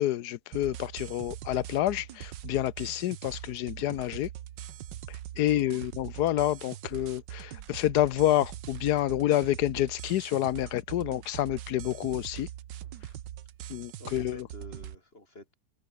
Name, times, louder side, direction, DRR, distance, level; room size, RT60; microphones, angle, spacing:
voice 1, 0.0-4.3 5.4-12.5 13.7-14.4, left 13 dB, 70° left, 1.1 m, -28 dB
sound 1, 0.5-14.9, right 12 dB, 80° right, 1.6 m, -42 dB
voice 2, 5.3-5.8 14.0-15.6, left 1 dB, 30° left, 6.2 m, -49 dB
open air
omnidirectional pair, 1.9 m